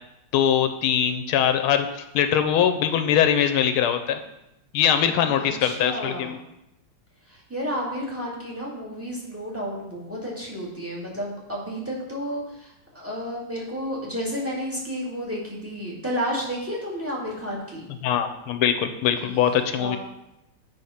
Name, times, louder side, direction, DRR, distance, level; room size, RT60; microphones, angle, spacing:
voice 1, 0.3-4.2 4.7-6.4 18.0-20.0, left 9 dB, 90° left, 9 dB, 1.5 m, -22 dB
voice 2, 5.0-6.4 7.3-17.9 19.2-19.3 19.7-20.0, equal, 5° right, -4 dB, 1.8 m, -31 dB
7.9 x 4.7 x 5.6 m, 0.88 s
omnidirectional pair, 2.3 m